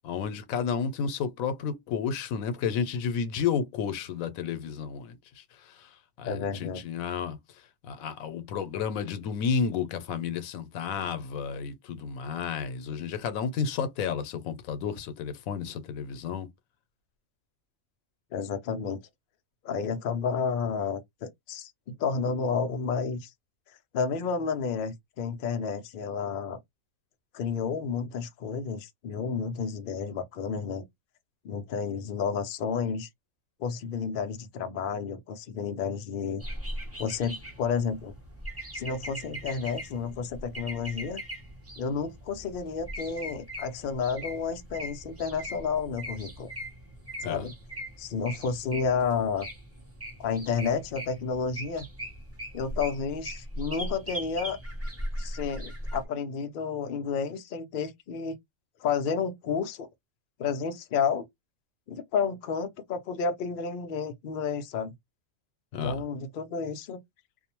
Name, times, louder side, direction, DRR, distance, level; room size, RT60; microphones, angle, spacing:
voice 1, 0.0-5.9 6.2-7.4 7.8-16.5 47.2-47.5 65.7-66.0, left 6 dB, 85° left, 1.0 m, -31 dB
voice 2, 6.2-6.8 18.3-19.0 19.6-23.3 23.9-26.6 27.3-30.9 31.4-33.1 33.6-36.4 37.0-38.1 38.7-41.2 41.8-46.5 47.2-47.5 48.0-49.5 50.2-51.9 52.5-54.6 55.2-58.4 58.8-59.9 60.4-61.3 61.9-64.9 65.8-67.0, left 6 dB, 65° left, 0.5 m, -31 dB
sound 1, 36.4-56.0, equal, 15° right, 0.5 m, -40 dB
2.6 x 2.0 x 2.8 m
omnidirectional pair, 1.4 m